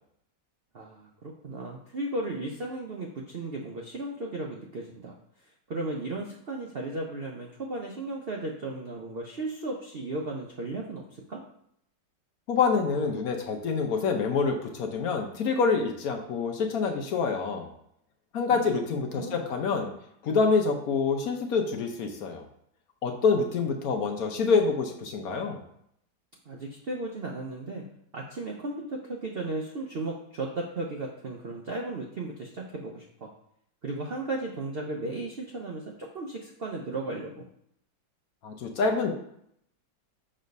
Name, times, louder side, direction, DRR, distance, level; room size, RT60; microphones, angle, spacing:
voice 1, 0.7-5.1 5.7-11.4 18.5-18.8 19.1-19.4 26.5-27.9 28.1-33.3 33.8-37.5, right 2 dB, 60° right, 0 dB, 0.6 m, -35 dB
voice 2, 12.5-17.7 18.3-19.9 20.2-22.4 23.0-25.6 38.4-39.1, left 5 dB, 60° left, 3 dB, 1.1 m, -26 dB
6.3 x 3.2 x 5.3 m, 0.72 s
omnidirectional pair, 1.9 m